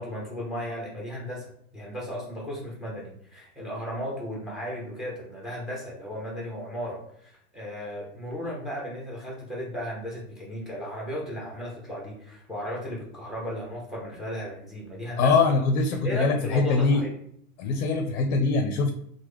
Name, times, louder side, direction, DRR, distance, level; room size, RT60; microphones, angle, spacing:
voice 1, 0.0-15.3 16.0-17.1, equal, ahead, -4 dB, 0.5 m, -35 dB
voice 2, 15.2-17.0 17.6-18.9, left 4 dB, 60° left, 5 dB, 0.5 m, -23 dB
3.0 x 2.1 x 3.4 m, 0.67 s
supercardioid pair, 140°, 43 cm